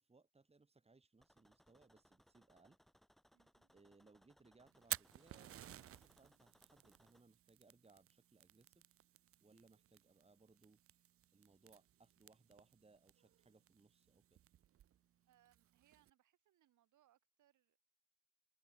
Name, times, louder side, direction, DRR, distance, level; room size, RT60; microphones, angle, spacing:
voice 1, 0.0-2.8 3.7-8.8 9.4-10.8 11.3-14.4, right 3 dB, 20° right, 2.7 m, -69 dB
sound 1, 1.2-7.2, equal, ahead, 2.6 m, -72 dB
voice 2, 3.3-3.7 9.5-9.7 15.3-17.8, right 12 dB, 80° right, 7.4 m, -76 dB
Fire, 4.7-16.1, right 11 dB, 50° right, 0.6 m, -54 dB
open air
cardioid pair, 90°, 30 cm